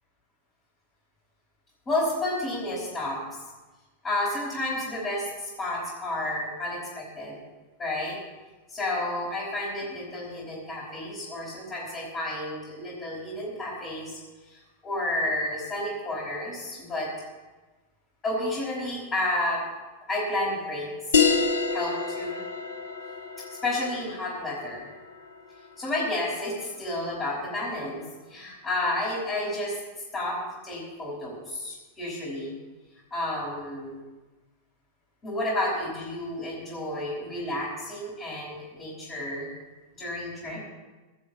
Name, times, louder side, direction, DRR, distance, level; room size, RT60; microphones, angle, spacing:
voice 1, 1.9-3.2 4.0-7.4 7.8-8.2 8.7-14.2 14.5-17.1 18.2-19.6 20.1-20.9 21.1-21.3 21.7-22.4 23.6-24.9 25.8-28.0 28.3-29.8 30.1-30.4 30.6-32.5 33.1-33.9 35.2-39.5 40.0-40.6, left 1 dB, 20° left, -7 dB, 5.4 m, -31 dB
sound 1, 21.1-26.2, left 5 dB, 65° left, 1.6 m, -28 dB
17.0 x 6.4 x 8.3 m, 1.2 s
figure-of-eight pair, 90°, 0 cm